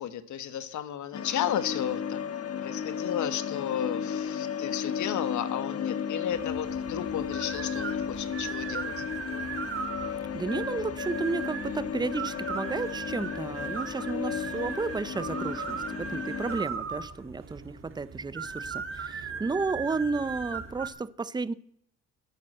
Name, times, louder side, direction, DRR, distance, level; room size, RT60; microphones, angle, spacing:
voice 1, 0.0-2.2 2.6-8.9, left 10 dB, 70° left, 1.3 m, -33 dB
sound 1, 1.1-16.6, left 7 dB, 50° left, 1.4 m, -34 dB
sound 2, 6.3-20.9, right 6 dB, 45° right, 2.3 m, -38 dB
voice 2, 10.3-21.5, right 4 dB, 15° right, 0.6 m, -32 dB
12.0 x 8.2 x 7.8 m
cardioid pair, 90°, 30 cm